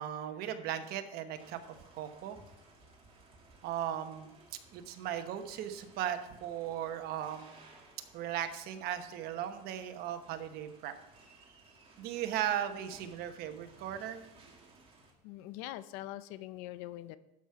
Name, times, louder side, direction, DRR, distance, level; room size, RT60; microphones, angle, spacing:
voice 1, 0.0-1.6 1.9-2.4 3.6-4.3 4.7-7.5 8.1-10.9 12.0-14.2, right 10 dB, 55° right, 8 dB, 1.1 m, -37 dB
sound 1, 1.3-15.1, right 2 dB, 30° right, 2.2 m, -60 dB
voice 2, 15.2-17.2, left 14 dB, 70° left, 14 dB, 0.5 m, -43 dB
12.0 x 6.0 x 4.7 m, 0.93 s
supercardioid pair, 125°, 19 cm